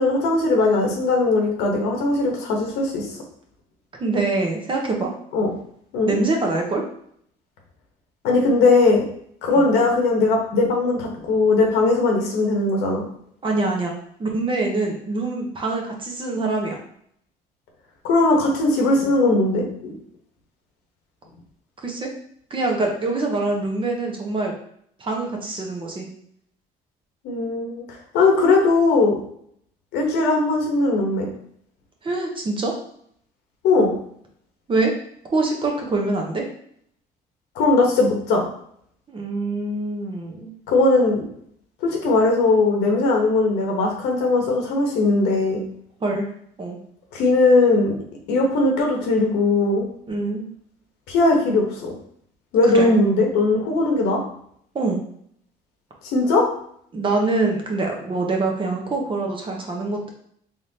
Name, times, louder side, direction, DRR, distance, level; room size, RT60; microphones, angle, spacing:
voice 1, 0.0-3.1 5.3-5.5 5.9-6.1 8.2-9.0 9.4-13.0 18.0-20.0 27.2-27.8 28.1-29.2 29.9-31.3 33.6-33.9 37.5-38.5 40.7-41.2 41.8-45.6 47.1-47.9 48.3-49.8 51.1-51.9 52.5-54.2 56.1-56.4, left 3 dB, 85° left, 0 dB, 1.0 m, -19 dB
voice 2, 4.0-5.1 6.1-6.8 9.5-9.7 13.4-13.9 14.2-16.8 21.8-22.1 22.5-24.5 25.0-26.1 32.0-32.7 34.7-34.9 35.3-36.4 39.1-40.5 46.0-46.3 46.6-46.8 50.1-50.5 52.7-52.9 54.7-55.0 56.9-60.1, right 3 dB, 30° right, 1 dB, 0.9 m, -24 dB
3.7 x 3.3 x 2.8 m, 0.66 s
cardioid pair, 110°, 17 cm